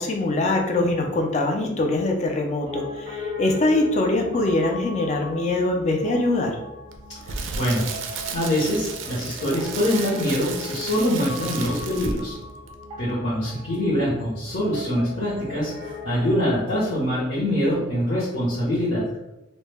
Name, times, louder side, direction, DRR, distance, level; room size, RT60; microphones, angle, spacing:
voice 1, 0.0-6.6, left 2 dB, 35° left, 3 dB, 0.3 m, -23 dB
Piano, 2.6-16.3, left 3 dB, 30° right, 0.6 m, -38 dB
Crackle, 6.9-12.4 12.7-12.8, right 5 dB, 80° right, 0.3 m, -34 dB
voice 2, 7.3-12.3 13.0-19.0, equal, 60° left, -10 dB, 0.7 m, -24 dB
2.1 x 2.1 x 3.2 m, 0.94 s
head